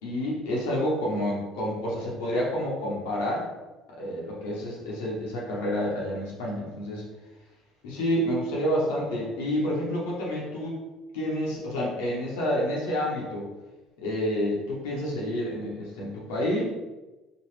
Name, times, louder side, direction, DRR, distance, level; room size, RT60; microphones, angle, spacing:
voice 1, 0.0-3.5 4.0-7.0 7.8-10.8 11.1-13.5 14.0-16.6, equal, 85° left, -4 dB, 0.9 m, -29 dB
2.9 x 2.4 x 3.2 m, 1.1 s
supercardioid pair, 80°, 0 cm